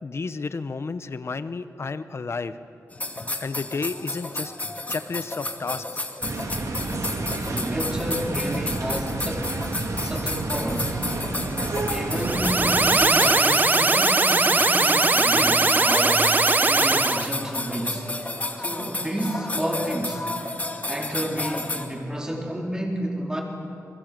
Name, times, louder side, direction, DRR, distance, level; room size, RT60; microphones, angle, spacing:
voice 1, 0.0-2.6 3.2-4.5 4.9-6.0, left 4 dB, 50° left, 12 dB, 1.0 m, -32 dB
sound 1, 2.9-21.9, left 2 dB, 25° left, 2.3 m, -32 dB
sound 2, 6.2-13.0, right 2 dB, 65° right, 3.0 m, -30 dB
voice 2, 7.4-9.7 9.9-11.0 11.9-18.1 18.6-20.3 20.9-23.4, right 1 dB, 10° right, 0 dB, 4.3 m, -31 dB
sound 3, 12.2-17.3, right 3 dB, 30° right, 1.0 m, -20 dB
28.5 x 22.0 x 7.7 m, 2.8 s
wide cardioid pair, 105°, 6 cm